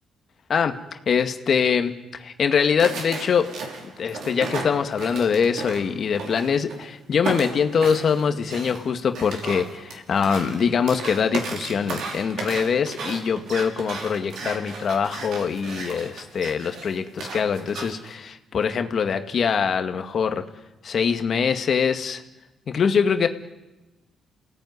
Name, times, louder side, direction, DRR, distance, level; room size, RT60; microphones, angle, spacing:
voice 1, 1.1-3.5 4.0-20.5 20.8-22.2 22.7-23.3, left 6 dB, 55° left, 7 dB, 2.0 m, -23 dB
sound 1, 2.8-6.9 7.2-18.1, right 3 dB, 70° right, 5.6 m, -35 dB
29.0 x 18.0 x 9.7 m, 1.1 s
cardioid pair, 90°, 0 cm